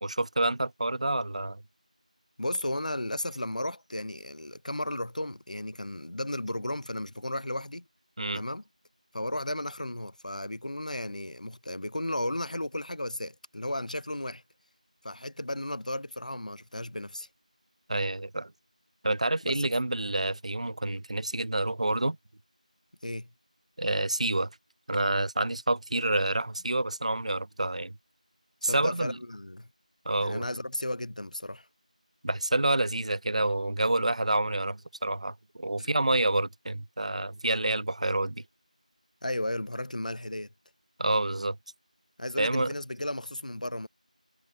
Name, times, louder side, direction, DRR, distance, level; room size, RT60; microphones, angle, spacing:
voice 1, 0.0-1.6 8.2-8.4 17.9-18.5 19.0-22.2 23.8-24.5 24.9-27.9 28.6-29.2 30.1-30.4 32.2-38.4 41.0-41.6 42.4-42.7, right 2 dB, 55° right, 0.3 m, -28 dB
voice 2, 2.4-7.8 8.3-8.6 9.1-14.4 15.0-17.3 19.4-19.7 23.0-23.3 28.6-29.7 30.2-31.7 35.8-35.9 39.2-40.5 42.2-43.9, left 1 dB, 70° left, 0.7 m, -34 dB
figure-of-eight pair, 170°, 4 cm